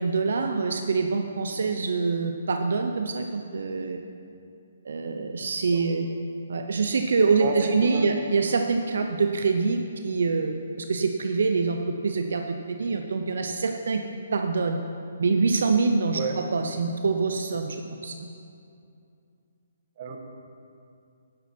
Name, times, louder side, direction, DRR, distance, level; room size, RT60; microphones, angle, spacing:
voice 1, 0.0-4.0 4.8-6.1 6.5-11.8 12.0-14.0 14.3-14.8 15.2-18.1, right 4 dB, 75° right, 5 dB, 0.7 m, -25 dB
voice 2, 7.4-8.1 16.1-16.4 20.0-20.2, right 5 dB, 40° right, 3 dB, 1.3 m, -30 dB
11.5 x 10.5 x 4.5 m, 2.5 s
hypercardioid pair, 160°, 0 cm